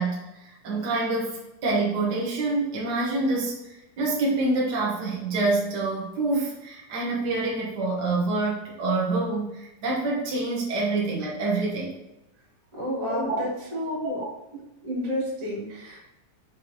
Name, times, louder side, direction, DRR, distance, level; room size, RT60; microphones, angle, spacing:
voice 1, 0.0-11.9 13.0-13.4, right 2 dB, 65° right, -5 dB, 1.0 m, -27 dB
voice 2, 12.7-14.2 14.5-16.0, left 1 dB, 45° right, -4 dB, 2.8 m, -31 dB
6.3 x 3.6 x 4.1 m, 0.93 s
omnidirectional pair, 4.0 m